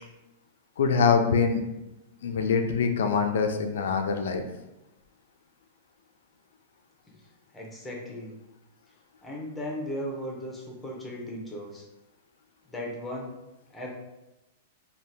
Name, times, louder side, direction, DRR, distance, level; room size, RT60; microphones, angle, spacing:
voice 1, 0.8-1.6 2.2-4.4, left 5 dB, 80° left, 5 dB, 0.4 m, -24 dB
voice 2, 7.5-8.3 9.2-11.8 12.7-13.3 13.7-13.9, equal, 5° left, -2 dB, 0.5 m, -36 dB
2.7 x 2.2 x 3.4 m, 0.95 s
supercardioid pair, 165°, 0 cm